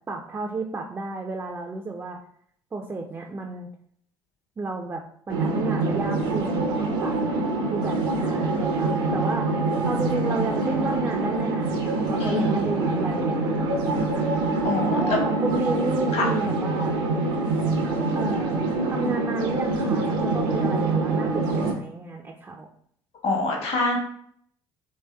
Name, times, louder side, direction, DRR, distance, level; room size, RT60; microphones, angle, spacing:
voice 1, 0.1-2.2 2.7-3.7 4.6-9.5 9.8-14.1 14.9-17.0 18.1-18.6 18.9-22.7, right 3 dB, 20° right, 2 dB, 0.3 m, -32 dB
sound 1, 5.3-21.7, right 3 dB, 75° right, 0.6 m, -25 dB
voice 2, 12.2-12.7 14.6-15.2 16.1-16.3 23.2-24.0, left 3 dB, 50° left, 1 dB, 0.9 m, -25 dB
3.1 x 2.8 x 2.2 m, 0.64 s
hypercardioid pair, 60°, 13 cm